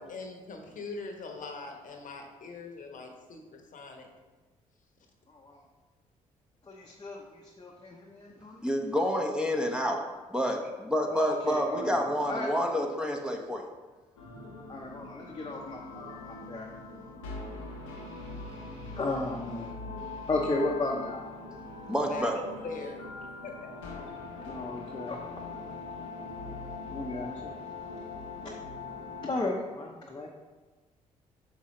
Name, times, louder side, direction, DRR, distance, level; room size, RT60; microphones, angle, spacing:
voice 1, 0.0-4.1 22.0-23.0 23.4-23.5, left 4 dB, 50° left, 3 dB, 1.1 m, -42 dB
voice 2, 5.3-5.6 6.7-8.6 11.1-12.8 14.7-16.7 17.9-19.7 20.0-21.2 24.5-25.2 26.9-27.5 28.0-28.1 28.4-28.5 29.2-30.3, left 2 dB, 25° left, -1 dB, 0.9 m, -35 dB
voice 3, 8.6-10.0 10.3-13.6 21.9-22.4, equal, 5° right, 1 dB, 0.9 m, -28 dB
sound 1, 14.2-29.4, left 3 dB, 80° left, 1.0 m, -42 dB
6.4 x 5.4 x 3.2 m, 1.3 s
hypercardioid pair, 45°, 17 cm